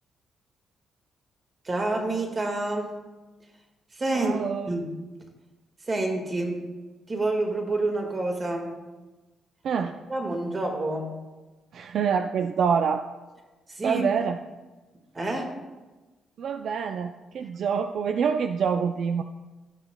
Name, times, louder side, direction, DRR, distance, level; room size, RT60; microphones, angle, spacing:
voice 1, 1.6-3.0 3.9-4.4 4.6-4.9 5.9-6.7 7.1-8.8 10.1-11.2 13.7-14.0 15.1-15.5, right 2 dB, 30° right, 2 dB, 1.7 m, -28 dB
voice 2, 4.1-4.7 9.6-9.9 11.7-13.1 13.8-14.4 16.4-19.2, right 6 dB, 65° right, 7 dB, 0.3 m, -26 dB
15.0 x 5.8 x 2.2 m, 1.2 s
cardioid pair, 90°, 0 cm